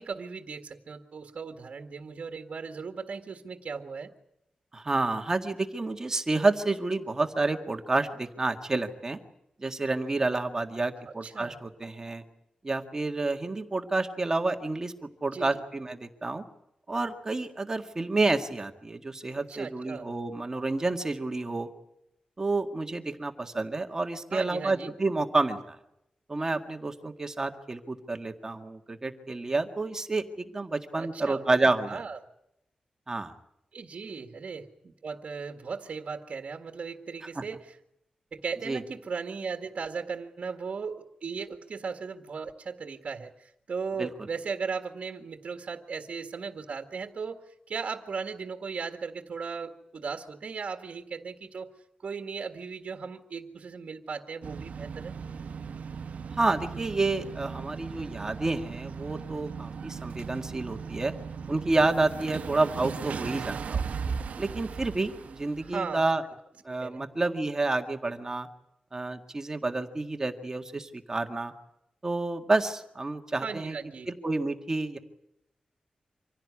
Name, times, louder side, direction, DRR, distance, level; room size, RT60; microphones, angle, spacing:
voice 1, 0.0-4.1 11.0-11.6 15.3-15.6 19.4-20.0 24.3-24.9 30.9-31.6 31.9-32.2 33.7-37.8 38.3-51.7 52.0-55.1 63.1-63.4 65.6-66.1 66.7-67.0 73.4-74.1, right 5 dB, 55° right, 5 dB, 1.8 m, -37 dB
voice 2, 4.7-9.2 9.6-12.2 12.6-14.9 15.2-16.4 16.9-21.7 22.4-25.8 26.3-32.0 33.1-33.3 37.4-37.5 38.7-38.8 44.0-44.1 56.3-61.1 61.5-63.8 64.4-66.2 66.6-68.5 68.9-71.5 72.0-73.8 74.1-75.0, right 3 dB, 25° right, 5 dB, 1.8 m, -29 dB
sound 1, 54.4-65.8, right 6 dB, 85° right, 1.0 m, -37 dB
25.5 x 16.5 x 9.7 m, 0.83 s
wide cardioid pair, 165°, 2 cm